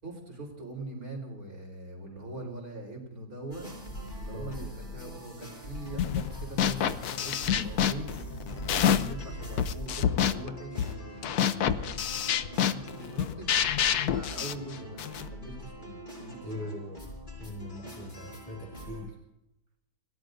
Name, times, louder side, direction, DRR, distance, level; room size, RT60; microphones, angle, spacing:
voice 1, 0.0-3.7 4.2-8.1 8.7-13.5 14.0-16.8, right 2 dB, 60° right, 0 dB, 4.5 m, -42 dB
sound 1, 3.5-19.0, equal, 30° left, 6.0 m, -42 dB
sound 2, 6.0-6.3 6.6-9.2 9.6-15.3, left 9 dB, 70° left, 1.3 m, -28 dB
voice 2, 16.4-17.1 17.4-19.2, left 1 dB, 5° left, -2 dB, 3.5 m, -41 dB
30.0 x 17.5 x 2.6 m, 0.87 s
omnidirectional pair, 1.7 m